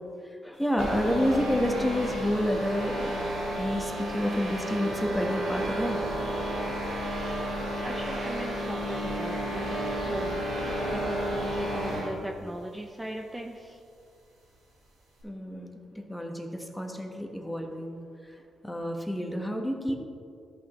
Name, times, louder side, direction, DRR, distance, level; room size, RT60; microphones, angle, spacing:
voice 1, 0.4-6.0 15.2-18.0 18.3-18.4 18.6-20.0, equal, 5° left, 2 dB, 1.4 m, -29 dB
sound 1, 0.8-12.2, equal, 85° right, 2.0 m, -32 dB
voice 2, 7.8-10.5 10.9-13.8, right 1 dB, 15° right, 2 dB, 0.7 m, -38 dB
13.5 x 5.7 x 3.2 m, 2.4 s
supercardioid pair, 50°, 0 cm